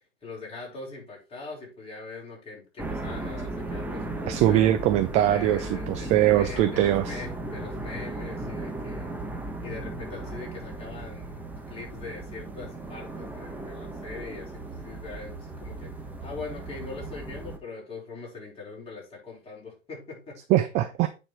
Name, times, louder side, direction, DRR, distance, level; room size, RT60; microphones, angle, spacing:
voice 1, 0.2-4.8 5.3-9.1 9.6-15.9 16.2-20.4, left 3 dB, 15° left, 5.0 m, -41 dB
sound 1, 2.8-17.6, right 2 dB, 5° right, 1.0 m, -36 dB
voice 2, 4.3-7.2 20.5-21.1, right 13 dB, 20° right, 0.3 m, -22 dB
8.8 x 4.5 x 4.7 m
figure-of-eight pair, 100°, 35 cm